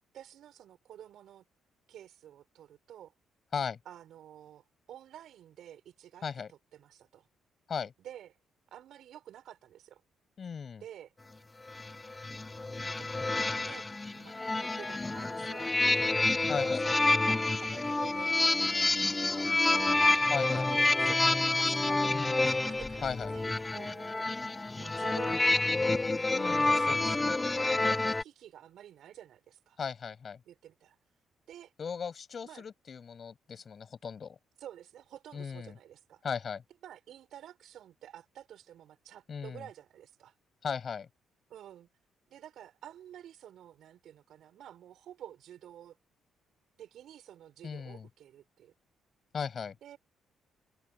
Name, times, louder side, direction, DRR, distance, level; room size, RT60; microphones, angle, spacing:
voice 1, 0.1-1.4 1.9-3.1 3.8-7.3 8.0-8.3 8.7-10.0 10.8-11.1 12.8-13.3 13.6-16.1 16.6-18.5 19.0-26.1 26.8-27.1 27.7-29.8 30.4-31.0 31.5-31.7 32.4-32.6 34.6-36.2 36.8-40.3 41.5-41.9 42.3-46.0 46.8-48.7 49.8-50.0, right 11 dB, 75° right, 6.3 m, -50 dB
voice 2, 10.4-10.8 16.5-16.8 20.3-20.7 22.1-22.5 23.0-23.3 26.3-27.4 29.8-30.4 31.8-34.4 35.3-35.8 36.2-36.6 39.3-39.7 40.6-41.1 47.6-48.1 49.3-49.8, left 6 dB, 45° left, 7.8 m, -37 dB
sound 1, 11.7-28.2, left 2 dB, 20° left, 1.0 m, -28 dB
cardioid pair, 90°, 0 cm